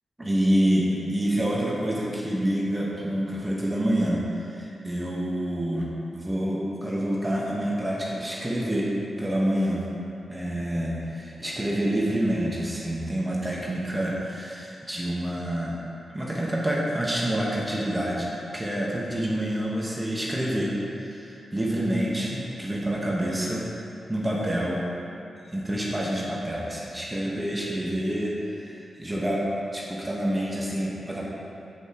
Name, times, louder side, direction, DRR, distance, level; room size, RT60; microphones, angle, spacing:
voice 1, 0.2-9.9 10.3-15.8 16.1-23.7 24.1-24.9 25.5-31.3, right 1 dB, 15° right, -5 dB, 1.1 m, -27 dB
8.0 x 7.9 x 2.9 m, 2.6 s
wide cardioid pair, 100°, 0 cm